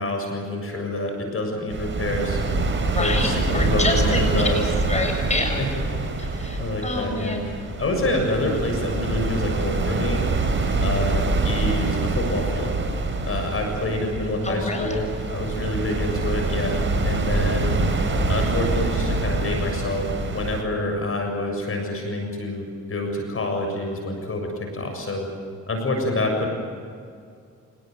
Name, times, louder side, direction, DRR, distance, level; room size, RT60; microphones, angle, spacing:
voice 1, 0.0-2.4 3.0-4.7 5.6-5.7 6.6-10.2 10.8-12.7 13.2-17.8 18.3-24.5 24.7-25.3 25.7-26.5, left 1 dB, 45° left, 3 dB, 7.1 m, -27 dB
sound 1, 1.7-20.6, right 3 dB, 40° right, 4.5 m, -25 dB
voice 2, 2.8-4.6 4.9-5.6 6.2-7.5 14.4-14.9, left 2 dB, 20° left, 3 dB, 7.3 m, -27 dB
28.5 x 19.5 x 7.9 m, 2.3 s
cardioid pair, 70°, 31 cm